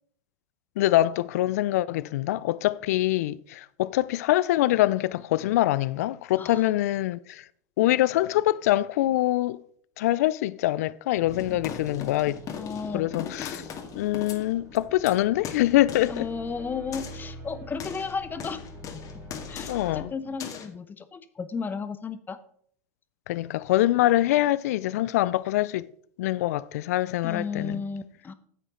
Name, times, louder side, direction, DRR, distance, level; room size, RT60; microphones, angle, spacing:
voice 1, 0.8-7.4 7.8-9.6 10.0-12.4 12.9-13.6 14.0-16.3 19.7-20.1 23.3-25.9 26.2-27.8, left 15 dB, 70° left, 0.4 m, -24 dB
voice 2, 6.3-6.6 11.5-11.6 12.5-13.1 16.1-19.0 19.5-22.4 27.2-28.3, left 5 dB, 20° left, 0.8 m, -34 dB
sound 1, 11.1-20.0, equal, 35° right, 3.2 m, -45 dB
sound 2, 11.3-15.1 15.4-16.2 16.9-17.3 17.8-20.0 20.4-20.7, left 8 dB, 40° left, 2.0 m, -39 dB
9.7 x 8.2 x 3.7 m
hypercardioid pair, 95°, 9 cm